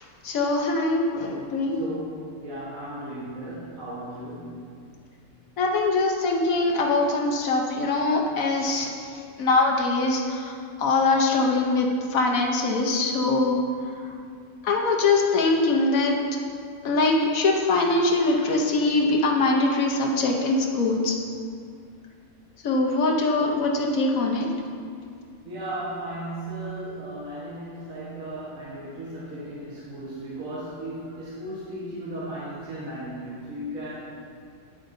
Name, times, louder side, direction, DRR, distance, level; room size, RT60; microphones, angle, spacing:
voice 1, 0.0-1.8 5.6-13.6 14.0-14.1 14.6-16.2 16.8-21.2 22.6-24.5, left 3 dB, 75° left, 0 dB, 1.2 m, -23 dB
voice 2, 1.7-4.6 25.4-34.1, right 1 dB, 70° right, -9 dB, 1.7 m, -36 dB
9.2 x 8.2 x 2.7 m, 2.2 s
omnidirectional pair, 1.5 m